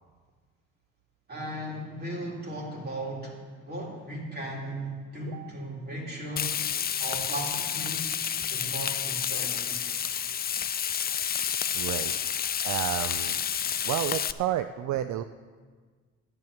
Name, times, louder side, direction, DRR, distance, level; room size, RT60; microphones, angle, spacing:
voice 1, 1.3-6.5 7.0-8.1 8.5-10.0, right 1 dB, 35° right, -2 dB, 3.4 m, -37 dB
Frying (food), 6.4-14.3, left 9 dB, 30° left, 0.4 m, -30 dB
voice 2, 11.7-13.3 13.8-15.2, right 12 dB, 70° right, 10 dB, 0.5 m, -31 dB
11.5 x 7.8 x 7.0 m, 1.5 s
cardioid pair, 90°, 30 cm